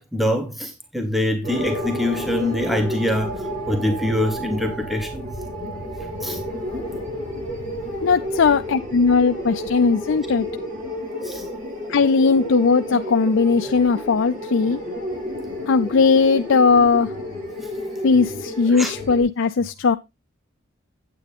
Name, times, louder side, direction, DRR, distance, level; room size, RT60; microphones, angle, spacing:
voice 1, 0.0-5.3 6.2-6.4 11.2-11.4 18.7-18.9, left 1 dB, ahead, 1.2 m, -24 dB
sound 1, 1.4-19.2, equal, 45° right, 6.3 m, -31 dB
voice 2, 8.0-10.5 11.9-14.8 15.7-17.1 18.0-20.0, left 4 dB, 65° left, 0.5 m, -18 dB
9.1 x 9.0 x 3.5 m
head